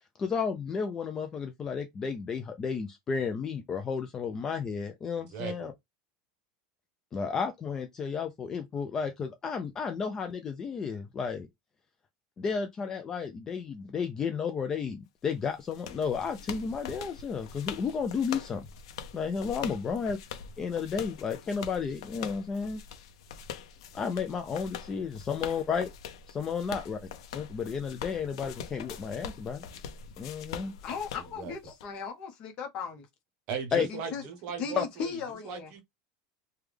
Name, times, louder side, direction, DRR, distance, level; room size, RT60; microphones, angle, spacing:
voice 1, 0.2-5.7 7.1-11.5 12.4-18.7 19.1-20.2 20.6-22.8 23.9-25.9 26.3-27.0 27.3-29.7 30.2-30.7 33.7-33.9 34.8-34.9, left 6 dB, 20° left, 0.3 m, -32 dB
voice 2, 5.1-5.7 31.4-31.5 33.5-35.1 35.4-35.8, right 6 dB, 40° right, 0.9 m, -38 dB
sound 1, 15.3-31.9, left 7 dB, 85° left, 0.6 m, -43 dB
voice 3, 30.8-33.1 33.8-34.2 34.6-35.7, left 6 dB, 35° left, 0.8 m, -37 dB
3.4 x 2.2 x 3.2 m
supercardioid pair, 170°, 3 cm